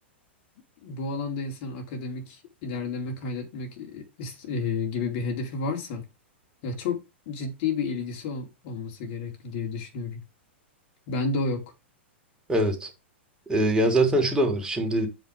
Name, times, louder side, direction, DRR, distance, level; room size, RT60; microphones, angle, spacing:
voice 1, 0.8-6.0 6.6-10.2 11.1-11.6, left 4 dB, 50° left, 4.1 m, -31 dB
voice 2, 12.5-12.9 13.5-15.1, right 1 dB, 10° right, 3.6 m, -23 dB
9.2 x 5.4 x 5.3 m
hypercardioid pair, 110°, 7 cm